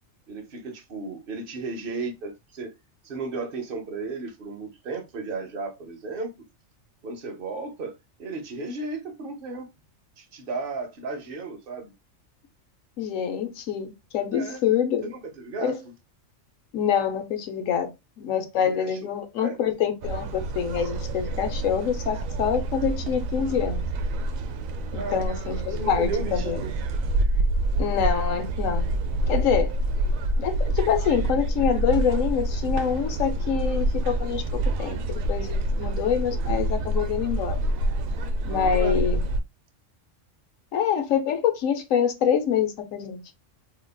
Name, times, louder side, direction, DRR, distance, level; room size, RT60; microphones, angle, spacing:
voice 1, 0.3-2.7 3.0-6.3 7.0-9.7 10.2-11.9 14.3-14.6 15.0-15.8 18.9-19.0 19.4-19.6 24.9-25.3 25.7-26.7 38.5-39.1, right 3 dB, 50° right, 0.8 m, -34 dB
voice 2, 13.0-15.0 15.6-15.7 16.7-17.9 18.2-23.8 24.9-26.6 27.8-28.9 29.3-29.7 30.4-34.4 34.8-37.6 38.4-39.2 40.7-43.2, left 8 dB, 80° left, 1.0 m, -26 dB
sound 1, 20.0-39.4, right 1 dB, 90° right, 1.0 m, -27 dB
3.7 x 2.8 x 2.2 m
omnidirectional pair, 1.4 m